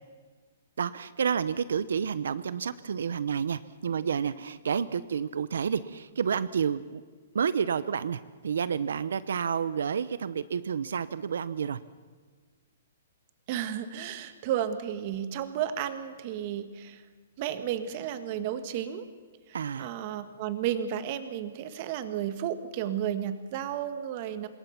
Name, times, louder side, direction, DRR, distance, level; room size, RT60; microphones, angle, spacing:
voice 1, 0.8-7.0 7.3-11.8 19.5-19.9, right 7 dB, 80° right, 16 dB, 0.8 m, -30 dB
voice 2, 13.5-17.0 17.4-19.1 19.5-24.5, right 10 dB, 35° right, 11 dB, 1.6 m, -33 dB
26.0 x 21.0 x 5.9 m, 1.5 s
hypercardioid pair, 170°, 0 cm